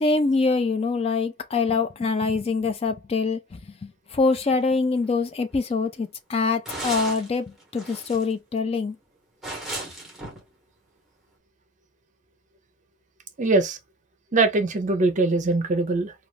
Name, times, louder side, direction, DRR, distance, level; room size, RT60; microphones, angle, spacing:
voice 1, 0.0-8.9, left 4 dB, 30° left, 0.4 m, -24 dB
sound 1, 4.6-4.7 5.0-5.1 5.6-5.7 6.7-7.3 7.6-8.3 9.4-10.4, right 1 dB, ahead, 1.1 m, -35 dB
voice 2, 13.4-13.8 14.3-16.1, right 3 dB, 40° right, 0.6 m, -22 dB
2.4 x 2.3 x 3.2 m
head